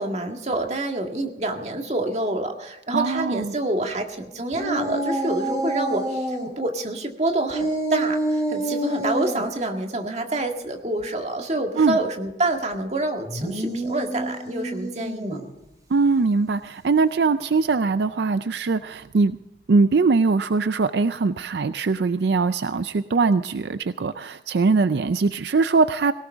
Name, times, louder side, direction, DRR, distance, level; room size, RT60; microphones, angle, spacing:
voice 1, 0.0-15.4, right 2 dB, 40° right, 3 dB, 1.9 m, -27 dB
voice 2, 2.9-3.5 11.8-12.0 15.9-19.4 19.7-26.1, right 4 dB, 70° right, 12 dB, 0.4 m, -21 dB
sound 1, 4.5-6.5 7.5-9.4 13.3-15.5, right 1 dB, 20° right, 3.7 m, -27 dB
18.0 x 18.0 x 3.6 m, 0.96 s
head